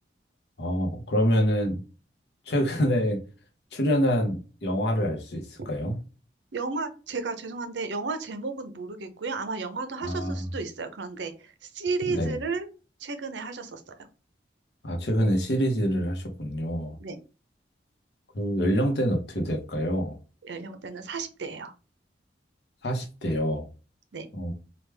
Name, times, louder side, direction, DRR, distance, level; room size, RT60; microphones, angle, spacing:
voice 1, 0.6-1.8 2.5-3.2 3.7-6.0 10.0-10.5 12.1-12.4 14.8-17.0 18.3-20.2 22.8-23.7 24.3-24.5, equal, 65° left, 0.9 m, -26 dB
voice 2, 6.5-12.7 13.0-13.9 17.0-17.2 20.4-21.7 24.1-24.3, right 4 dB, 80° right, 0.6 m, -33 dB
3.4 x 2.3 x 3.3 m
head